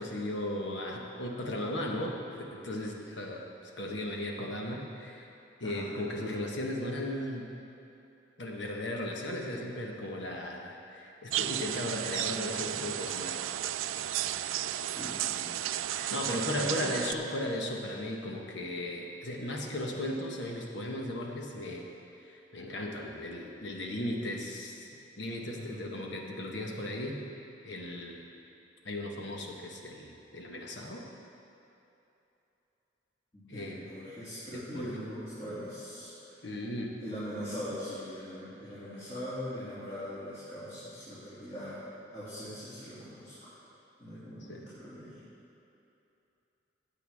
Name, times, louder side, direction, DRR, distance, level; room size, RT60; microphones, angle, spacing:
voice 1, 0.0-5.3 5.6-7.5 8.4-13.4 16.0-21.9 22.2-24.9 25.2-27.2 27.6-28.2 28.8-31.0 33.5-33.8 34.7-34.9 36.4-36.9 44.3-44.6, left 1 dB, 65° left, 0 dB, 1.3 m, -36 dB
voice 2, 5.6-5.9 14.8-15.5 15.9-16.1 16.5-16.9 25.5-25.8 33.3-36.4 37.0-43.5 44.0-45.2, equal, 30° left, -12 dB, 2.5 m, -41 dB
sound 1, 11.3-17.1, right 12 dB, 90° right, 0.3 m, -33 dB
16.0 x 8.1 x 3.5 m, 2.9 s
head